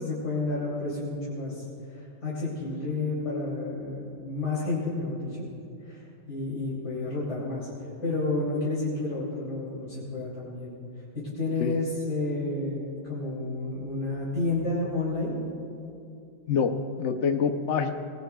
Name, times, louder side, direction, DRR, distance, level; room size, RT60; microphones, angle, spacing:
voice 1, 0.0-1.6 1.9-5.5 5.8-7.7 8.0-10.8 11.2-15.3, left 2 dB, 60° left, -8 dB, 3.4 m, -30 dB
voice 2, 16.5-17.9, left 6 dB, 75° left, 6 dB, 0.6 m, -26 dB
24.5 x 19.5 x 2.3 m, 2.6 s
omnidirectional pair, 2.1 m